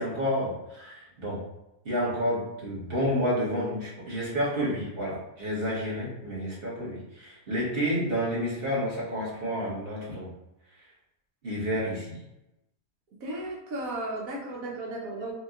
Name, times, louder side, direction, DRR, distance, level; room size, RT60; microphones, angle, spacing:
voice 1, 0.0-1.4 1.8-10.3 11.4-12.2, equal, 40° right, -7 dB, 1.7 m, -30 dB
voice 2, 13.2-15.3, right 1 dB, 70° right, -2 dB, 1.4 m, -34 dB
4.9 x 2.9 x 2.5 m, 0.92 s
omnidirectional pair, 1.6 m